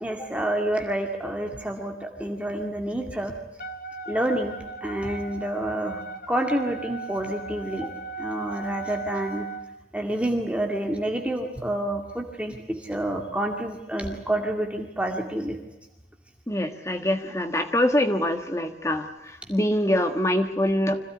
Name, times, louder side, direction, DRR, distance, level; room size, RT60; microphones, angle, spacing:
voice 1, 0.0-3.3 4.1-6.0 6.3-7.9 8.2-9.5 9.9-15.6, right 1 dB, 5° right, 2 dB, 2.1 m, -28 dB
Wind instrument woodwind instrument, 3.6-9.7, right 4 dB, 50° left, 1.9 m, -37 dB
voice 2, 16.5-21.0, left 1 dB, 15° left, 6 dB, 1.5 m, -24 dB
26.0 x 17.0 x 9.8 m, 0.95 s
head